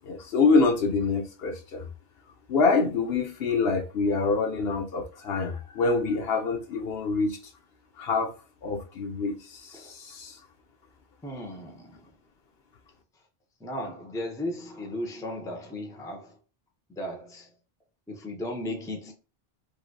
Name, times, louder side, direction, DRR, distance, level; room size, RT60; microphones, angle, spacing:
voice 1, 0.0-1.9 2.5-7.4 8.0-8.3 8.6-10.4, left 4 dB, 70° left, 1.0 m, -26 dB
voice 2, 11.2-11.9 13.6-16.2 17.0-17.4 18.1-19.1, left 1 dB, 5° left, 0.5 m, -35 dB
3.2 x 2.7 x 2.6 m
omnidirectional pair, 1.1 m